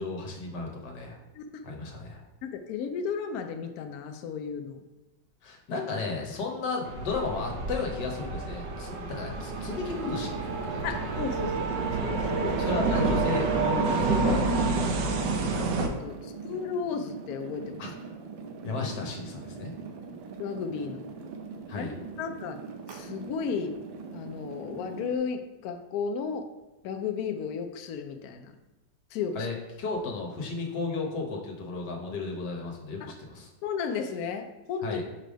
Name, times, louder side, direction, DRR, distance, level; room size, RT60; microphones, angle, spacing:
voice 1, 0.0-1.2 1.6-2.2 5.4-10.8 12.6-15.4 17.8-17.9 18.6-19.7 21.7-21.9 29.3-33.5 34.8-35.0, left 3 dB, 60° left, 1 dB, 1.5 m, -34 dB
voice 2, 2.4-4.8 9.0-9.1 10.8-12.7 16.0-17.8 20.4-21.1 21.7-21.9 22.2-22.6 22.9-23.7 24.1-26.5 26.8-28.5 29.1-29.5 33.0-33.1 33.6-35.0, left 6 dB, 85° left, 6 dB, 0.8 m, -34 dB
sound 1, 6.8-15.9, right 3 dB, 70° right, 1.3 m, -28 dB
sound 2, 9.3-25.2, right 5 dB, 90° right, 1.5 m, -42 dB
5.5 x 3.4 x 5.0 m, 1.1 s
omnidirectional pair, 2.2 m